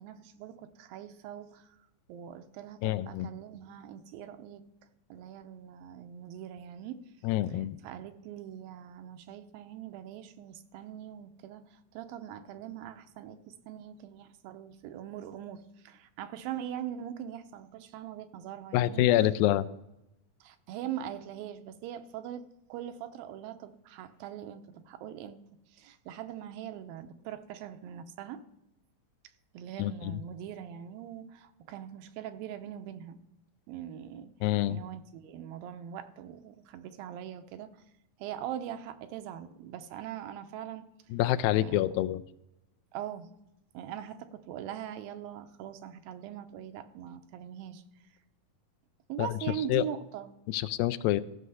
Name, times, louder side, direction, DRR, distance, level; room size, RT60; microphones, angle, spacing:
voice 1, 0.0-1.8 2.1-4.6 5.1-7.1 7.5-19.1 20.4-25.4 25.7-28.4 29.5-33.2 33.7-34.3 34.7-37.8 38.2-40.9 41.5-42.0 42.9-43.3 43.7-47.8 49.1-50.3, right 10 dB, 90° right, 8 dB, 2.5 m, -42 dB
voice 2, 2.8-3.3 7.2-7.8 18.7-19.7 29.8-30.2 34.4-34.8 41.1-42.2 49.2-49.3 49.7-49.8 50.5-51.2, left 14 dB, 85° left, 12 dB, 2.3 m, -26 dB
15.0 x 6.5 x 5.5 m, 0.89 s
omnidirectional pair, 4.2 m